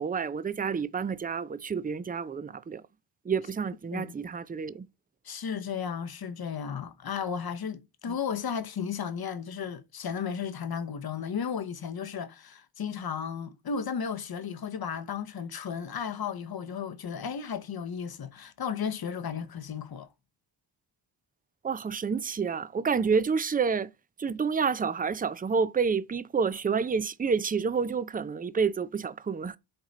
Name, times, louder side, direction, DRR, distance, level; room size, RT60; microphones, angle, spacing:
voice 1, 0.0-2.8 3.3-4.9 8.1-8.2 21.6-23.9 24.2-29.6, right 5 dB, 20° right, 0.4 m, -29 dB
voice 2, 5.2-20.1, left 7 dB, 55° left, 0.9 m, -34 dB
8.0 x 3.8 x 4.1 m
cardioid pair, 65°, 45 cm